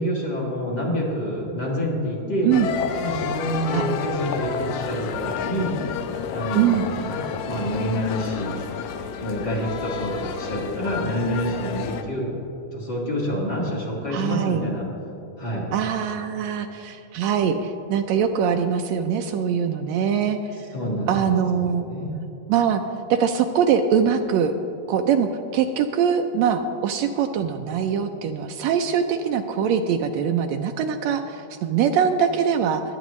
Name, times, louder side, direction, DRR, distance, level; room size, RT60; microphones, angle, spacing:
voice 1, 0.0-2.5 3.0-5.8 6.3-8.6 9.2-12.4 12.7-14.9 15.4-15.7 20.7-22.1, equal, 40° left, -4 dB, 2.2 m, -27 dB
sound 1, 2.5-12.0, left 7 dB, 85° left, 2.1 m, -31 dB
voice 2, 14.1-14.6 15.7-20.5 21.1-21.9 22.5-22.8 23.1-24.5 24.9-32.8, right 7 dB, 80° right, 6 dB, 1.7 m, -22 dB
21.5 x 8.7 x 3.1 m, 3.0 s
omnidirectional pair, 3.3 m